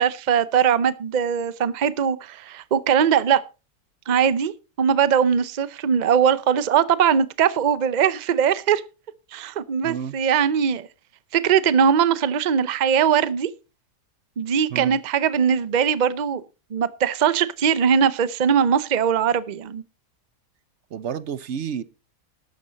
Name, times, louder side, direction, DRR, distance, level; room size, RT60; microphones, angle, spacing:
voice 1, 0.0-3.4 4.1-8.8 9.3-10.9 11.3-13.5 14.4-16.4 16.7-19.8, right 7 dB, 80° right, 0.4 m, -20 dB
voice 2, 9.8-10.2 14.7-15.0 20.9-21.8, right 8 dB, 55° right, 0.8 m, -30 dB
12.0 x 9.3 x 4.0 m
omnidirectional pair, 1.8 m